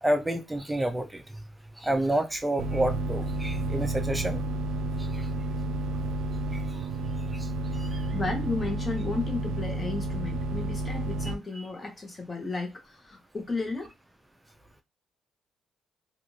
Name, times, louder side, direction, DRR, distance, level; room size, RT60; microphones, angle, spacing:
voice 1, 0.0-1.2 1.8-4.4 5.1-5.3 6.5-6.6 7.3-7.5 7.8-8.0, right 1 dB, 10° right, 0.5 m, -29 dB
sound 1, 2.6-11.3, right 2 dB, 85° right, 0.4 m, -31 dB
voice 2, 8.1-13.9, left 3 dB, 25° left, 0.9 m, -33 dB
2.5 x 2.5 x 3.0 m
cardioid pair, 90°, 0 cm